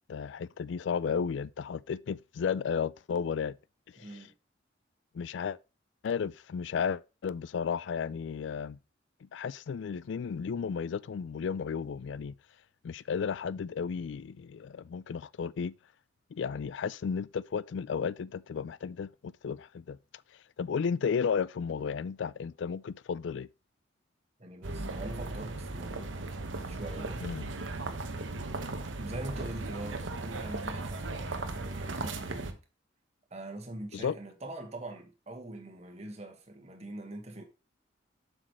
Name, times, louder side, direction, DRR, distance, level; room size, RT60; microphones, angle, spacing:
voice 1, 0.1-3.6 4.0-4.1 5.1-5.6 6.0-8.8 9.2-12.3 12.8-15.7 16.3-20.0 20.6-23.5 27.2-27.5 33.9-34.1, left 6 dB, 75° left, 0.3 m, -33 dB
voice 2, 4.0-4.3 24.4-26.1 26.7-27.2 28.9-32.6 33.3-37.4, right 1 dB, 35° right, 1.5 m, -43 dB
sound 1, 24.6-32.5, right 2 dB, 85° right, 1.0 m, -37 dB
7.6 x 6.3 x 3.1 m
head